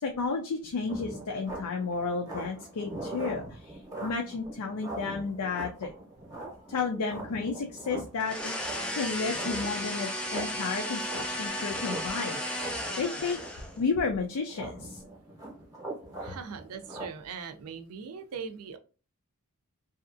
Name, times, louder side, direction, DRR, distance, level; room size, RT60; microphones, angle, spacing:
voice 1, 0.0-5.9 6.7-12.5 13.0-13.4 13.8-15.0, left 4 dB, 80° left, 3 dB, 0.5 m, -32 dB
sound 1, 0.9-17.1, right 2 dB, 15° right, 0.8 m, -42 dB
sound 2, 8.2-13.8, left 1 dB, 5° left, 0.4 m, -34 dB
voice 2, 16.2-18.8, right 6 dB, 75° right, 8 dB, 0.5 m, -40 dB
2.7 x 2.4 x 2.5 m, 0.34 s
head